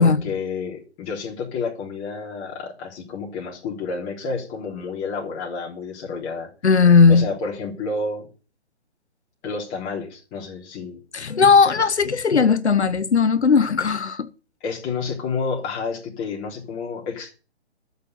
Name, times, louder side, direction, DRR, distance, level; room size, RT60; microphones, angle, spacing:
voice 1, 0.0-6.8 7.1-8.3 9.4-11.0 14.6-17.3, left 4 dB, 20° left, 3.5 m, -30 dB
voice 2, 6.6-7.2 11.1-14.3, left 5 dB, 80° left, 1.0 m, -17 dB
12.0 x 6.8 x 7.9 m
figure-of-eight pair, 140°, 33 cm